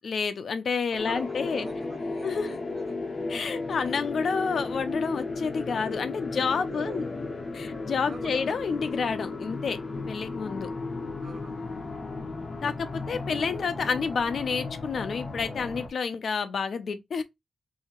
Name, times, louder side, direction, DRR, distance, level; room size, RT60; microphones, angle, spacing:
voice 1, 0.0-1.7 2.2-2.5 3.3-7.0 7.5-9.8 10.1-10.7 12.6-17.2, left 5 dB, 65° left, 0.6 m, -29 dB
voice 2, 0.9-3.0 6.3-7.1 7.9-8.4 11.1-11.8, right 4 dB, 40° right, 0.5 m, -44 dB
sound 1, 1.0-15.9, left 3 dB, 35° left, 0.8 m, -35 dB
2.8 x 2.7 x 4.3 m
wide cardioid pair, 170°, 0 cm